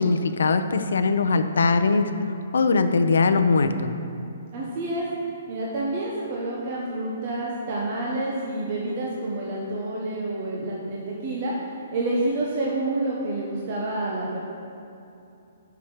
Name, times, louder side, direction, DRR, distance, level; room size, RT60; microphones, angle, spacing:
voice 1, 0.0-2.1 2.5-3.9, left 4 dB, 85° left, 9 dB, 0.5 m, -21 dB
voice 2, 4.5-5.1 5.5-11.5 11.9-14.4, right 2 dB, 40° right, -4 dB, 1.0 m, -28 dB
5.8 x 5.7 x 6.5 m, 2.8 s
hypercardioid pair, 165°, 0 cm